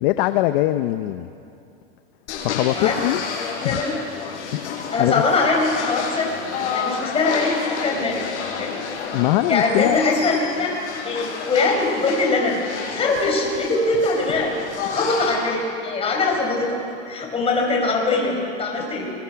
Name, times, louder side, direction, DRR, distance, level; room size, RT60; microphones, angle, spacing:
voice 1, 0.0-1.3 2.4-3.2 3.6-3.8 4.5-5.2 9.1-10.0, left 15 dB, 50° left, 10 dB, 0.8 m, -22 dB
sound 1, 2.3-15.4, left 6 dB, 80° left, 5.4 m, -31 dB
voice 2, 3.6-4.0 4.9-6.3 6.7-8.2 8.6-8.8 9.5-10.7 11.0-14.5 14.9-16.8 17.1-19.1, left 3 dB, 15° left, 0 dB, 4.8 m, -22 dB
28.5 x 22.5 x 5.9 m, 2.6 s
supercardioid pair, 155°, 34 cm